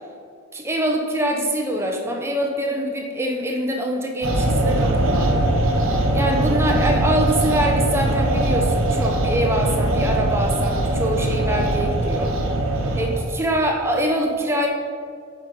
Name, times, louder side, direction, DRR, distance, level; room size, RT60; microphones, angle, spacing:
voice 1, 0.5-5.4 6.1-12.3 12.9-14.7, equal, 10° right, 1 dB, 0.7 m, -24 dB
sound 1, 4.2-13.4, right 1 dB, 65° right, 1.2 m, -21 dB
8.7 x 5.5 x 5.2 m, 2.3 s
head